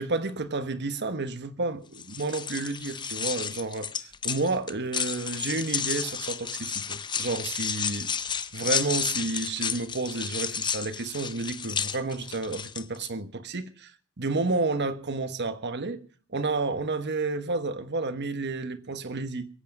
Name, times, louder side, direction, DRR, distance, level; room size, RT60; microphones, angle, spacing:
voice 1, 0.0-3.9 4.2-8.1 8.5-13.9 14.2-16.0 16.3-19.5, right 3 dB, 50° right, 1.2 m, -30 dB
sound 1, 1.9-13.1, left 7 dB, 20° left, 0.6 m, -32 dB
23.0 x 8.4 x 5.3 m
head